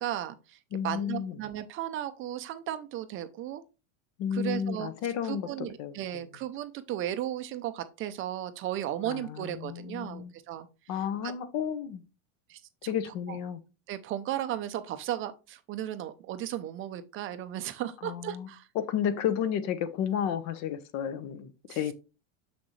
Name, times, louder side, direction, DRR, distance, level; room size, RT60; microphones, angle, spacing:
voice 1, 0.0-0.6 0.8-3.6 4.3-4.9 5.2-10.7 10.9-11.3 12.5-12.9 13.3-13.4 13.9-18.7 21.7-21.9, right 12 dB, 30° right, 0.6 m, -35 dB
voice 2, 0.7-1.3 4.2-6.0 9.0-10.3 10.9-12.0 12.9-13.6 18.0-18.5 18.7-21.9, left 8 dB, 45° left, 1.0 m, -32 dB
6.9 x 6.2 x 3.2 m
supercardioid pair, 140°, 39 cm